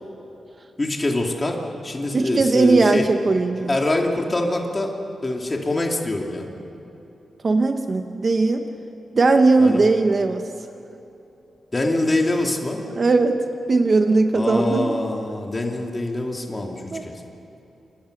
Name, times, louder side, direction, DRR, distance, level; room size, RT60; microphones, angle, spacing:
voice 1, 0.8-3.1 3.7-4.9 5.2-6.5 9.6-9.8 11.7-12.8 14.3-17.1, left 2 dB, 20° left, 1 dB, 2.6 m, -24 dB
voice 2, 2.1-3.7 7.4-8.7 9.1-10.5 13.0-13.4 13.7-15.0 16.9-17.0, right 3 dB, 30° right, 6 dB, 1.0 m, -18 dB
29.0 x 28.5 x 6.6 m, 2.9 s
wide cardioid pair, 180°, 0 cm